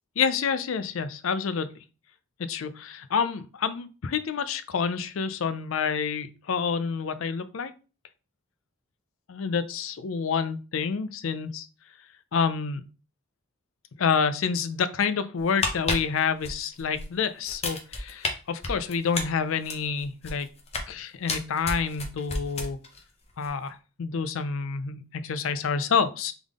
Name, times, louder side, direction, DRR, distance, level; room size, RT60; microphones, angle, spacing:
voice 1, 0.2-1.7 2.5-7.7 9.3-11.7 12.3-12.8 14.0-20.5 20.9-22.8 23.4-26.3, left 6 dB, 70° left, 12 dB, 0.4 m, -28 dB
sound 1, 15.4-17.1 17.4-18.3 18.6-20.9 21.3-23.0 23.3-23.5, left 3 dB, 30° left, 0.6 m, -31 dB
3.7 x 3.5 x 3.6 m, 0.34 s
head